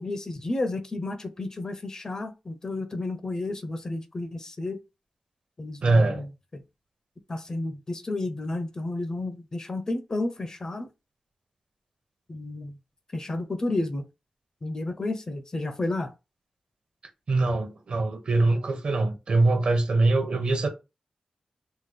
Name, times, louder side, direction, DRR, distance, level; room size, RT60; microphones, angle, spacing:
voice 1, 0.0-4.8 5.6-6.3 7.3-10.9 12.3-12.7 13.1-14.1 14.6-16.1, left 2 dB, 30° left, 0.4 m, -31 dB
voice 2, 5.8-6.2 17.3-20.7, right 2 dB, 60° right, 0.7 m, -23 dB
3.6 x 2.1 x 3.2 m
wide cardioid pair, 130°, 2 cm